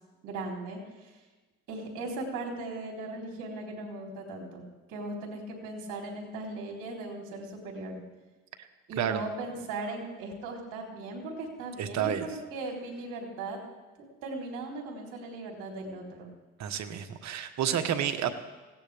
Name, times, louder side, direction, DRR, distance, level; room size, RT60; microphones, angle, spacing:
voice 1, 0.2-1.2 1.7-8.0 8.9-13.6 14.2-16.3, right 2 dB, 80° right, 0 dB, 3.8 m, -38 dB
voice 2, 11.8-12.3 16.6-18.3, right 9 dB, 60° right, 8 dB, 1.3 m, -30 dB
20.0 x 17.0 x 3.5 m, 1.3 s
supercardioid pair, 85°, 31 cm